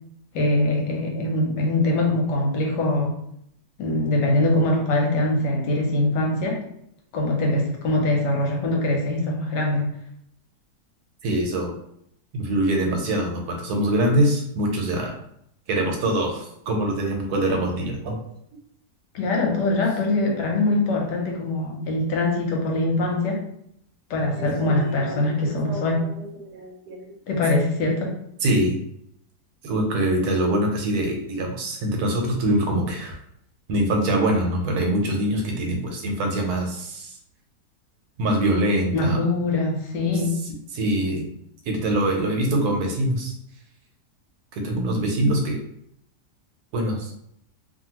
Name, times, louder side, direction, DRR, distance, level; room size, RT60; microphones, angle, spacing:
voice 1, 0.3-3.1 3.8-6.6 7.1-9.9 19.1-23.4 24.1-26.0 27.3-28.1 38.9-40.3, left 2 dB, 90° left, 0 dB, 1.4 m, -23 dB
voice 2, 11.2-11.7 12.3-15.1 15.7-18.2 24.4-25.8 26.2-27.1 28.4-28.8 29.6-33.2 33.7-37.2 38.2-39.2 40.7-41.2 41.6-43.3 44.5-45.6 46.7-47.1, right 1 dB, 70° right, 1 dB, 1.2 m, -24 dB
2.7 x 2.7 x 2.8 m, 0.72 s
omnidirectional pair, 1.8 m